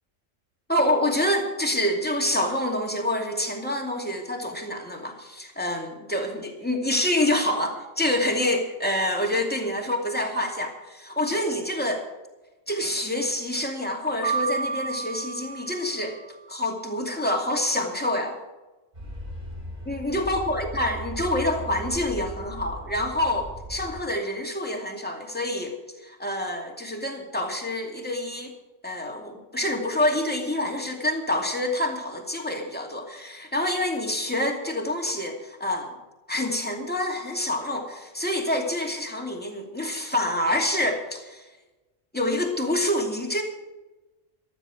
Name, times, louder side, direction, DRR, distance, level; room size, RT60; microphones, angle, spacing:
voice 1, 0.7-12.1 12.7-16.2 16.5-18.4 19.8-25.7 26.0-28.5 28.8-35.9 36.3-41.5 42.1-43.4, left 1 dB, 5° left, 2 dB, 2.5 m, -27 dB
Piano, 14.2-16.4, right 4 dB, 85° left, 4.2 m, -30 dB
sound 1, 18.9-24.0, right 1 dB, 45° right, 6.7 m, -37 dB
15.0 x 13.0 x 4.9 m, 1.1 s
omnidirectional pair, 1.3 m